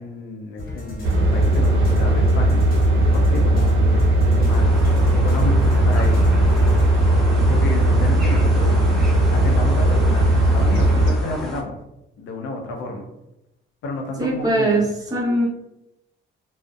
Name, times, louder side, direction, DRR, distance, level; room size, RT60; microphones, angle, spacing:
voice 1, 0.0-2.6 3.1-4.7 5.2-6.3 7.5-8.7 9.3-11.8 12.2-13.1 13.8-14.8, left 2 dB, 75° left, 1 dB, 0.6 m, -31 dB
sound 1, 0.6-6.9, left 2 dB, 50° left, 0.9 m, -32 dB
sound 2, 1.0-11.1, right 1 dB, 80° right, 0.5 m, -17 dB
sound 3, 4.5-11.6, equal, ahead, 0.5 m, -33 dB
voice 2, 14.2-15.5, right 2 dB, 20° right, -5 dB, 0.9 m, -21 dB
2.5 x 2.0 x 2.3 m, 0.89 s
cardioid pair, 90°, 20 cm